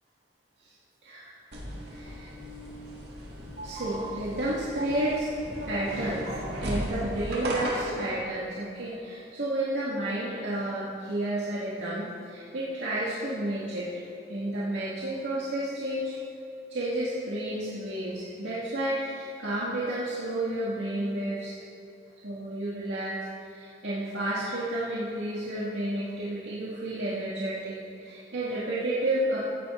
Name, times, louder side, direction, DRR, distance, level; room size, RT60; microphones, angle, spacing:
voice 1, 1.0-1.3 1.9-2.3 3.6-5.3 5.7-13.9 14.3-16.1 16.7-21.6 22.2-29.4, right 1 dB, 85° right, -8 dB, 1.9 m, -31 dB
sound 1, 1.5-8.1, right 1 dB, 65° right, 2.9 m, -36 dB
15.5 x 10.0 x 3.8 m, 2.8 s
head